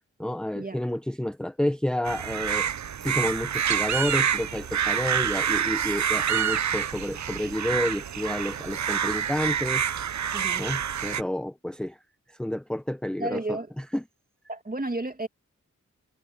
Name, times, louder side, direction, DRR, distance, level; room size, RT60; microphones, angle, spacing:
voice 1, 0.2-2.7 3.0-10.3 10.6-12.0 12.3-14.0, left 1 dB, 5° left, 0.8 m, -30 dB
sound 1, 2.0-11.2, right 8 dB, 60° right, 0.7 m, -27 dB
voice 2, 10.3-10.6 13.2-13.7 14.5-15.3, right 2 dB, 25° right, 2.7 m, -32 dB
cardioid pair, 55°, 31 cm